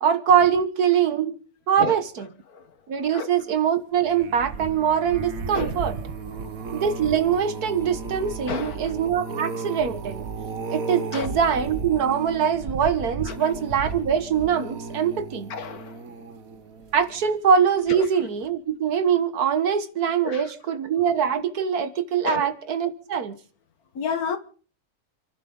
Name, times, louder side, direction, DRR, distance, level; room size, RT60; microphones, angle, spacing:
voice 1, 0.0-1.4 1.7-2.3 2.9-6.0 6.7-10.2 10.7-15.5 16.9-23.4, right 7 dB, 85° right, 1.8 m, -23 dB
sound 1, 4.0-17.3 17.9-18.2 18.4-18.5, right 4 dB, 70° right, 1.6 m, -34 dB
voice 2, 15.5-16.0 17.9-18.0 20.2-20.4 22.2-22.5 24.0-24.4, left 6 dB, 80° left, 1.9 m, -30 dB
29.0 x 11.5 x 3.8 m
omnidirectional pair, 1.6 m